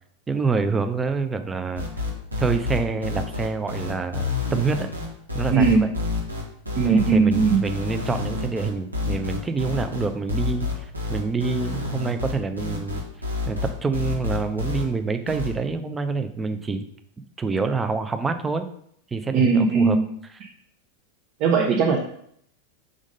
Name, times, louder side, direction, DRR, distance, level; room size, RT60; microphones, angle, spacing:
voice 1, 0.3-1.9 2.4-4.9 5.3-5.9 6.8-13.0 13.5-16.9 17.2-18.7 19.1-20.0, right 4 dB, 15° right, 7 dB, 0.6 m, -27 dB
sound 1, 1.8-14.8 15.3-15.5, left 3 dB, 80° right, 1.5 m, -28 dB
voice 2, 5.5-5.8 6.8-7.6 19.3-20.1 21.4-22.0, right 5 dB, 40° right, -1 dB, 0.9 m, -19 dB
5.3 x 3.7 x 5.3 m, 0.68 s
figure-of-eight pair, 90°, 0 cm